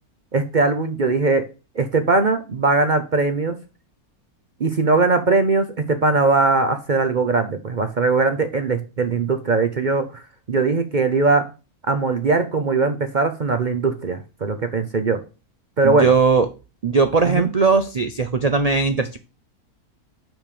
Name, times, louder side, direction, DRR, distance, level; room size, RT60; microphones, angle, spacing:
voice 1, 0.3-1.5 1.8-3.6 4.6-10.2 10.5-11.5 11.9-15.2 15.8-16.1 17.2-17.5, right 3 dB, 40° right, 8 dB, 0.7 m, -20 dB
voice 2, 15.8-16.5 16.8-19.2, right 4 dB, 75° right, 9 dB, 0.3 m, -18 dB
6.2 x 5.1 x 6.7 m, 0.31 s
omnidirectional pair, 1.6 m